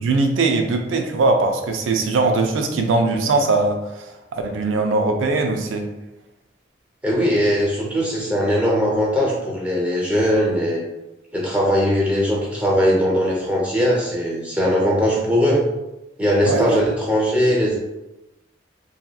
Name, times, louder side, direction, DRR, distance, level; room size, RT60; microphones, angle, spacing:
voice 1, 0.0-5.9 16.4-16.8, right 3 dB, 90° right, 4 dB, 0.4 m, -20 dB
voice 2, 7.0-10.8 11.3-15.6 16.2-17.8, equal, 5° right, -4 dB, 0.5 m, -20 dB
2.8 x 2.3 x 2.2 m, 0.96 s
head